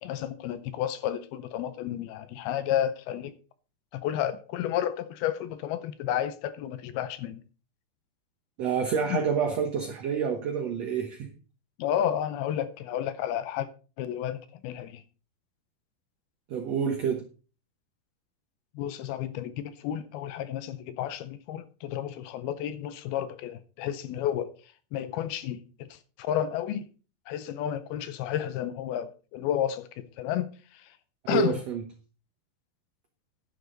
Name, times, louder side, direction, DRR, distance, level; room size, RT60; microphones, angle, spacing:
voice 1, 0.0-3.3 3.9-7.4 9.1-9.2 11.8-13.7 14.0-15.0 18.8-24.5 24.9-26.9 27.3-31.0 31.3-31.6, left 10 dB, 80° left, 2.6 m, -31 dB
voice 2, 8.6-11.3 16.5-17.2 31.2-31.8, right 7 dB, 65° right, 1.7 m, -28 dB
11.0 x 10.0 x 4.0 m
omnidirectional pair, 4.6 m